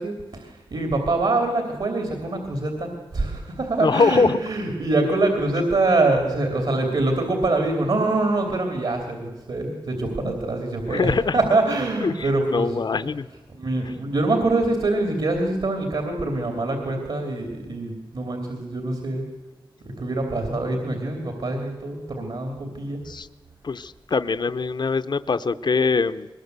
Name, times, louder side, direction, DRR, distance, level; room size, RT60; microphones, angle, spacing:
voice 1, 0.0-13.1 13.5-19.3 19.8-23.0, right 2 dB, 75° right, 4 dB, 3.1 m, -24 dB
voice 2, 3.8-4.4 10.2-10.3 10.9-11.4 12.0-13.3 23.1-23.3 23.6-26.3, left 4 dB, 60° left, 12 dB, 0.7 m, -23 dB
21.5 x 20.0 x 8.1 m, 1.2 s
wide cardioid pair, 95°, 9 cm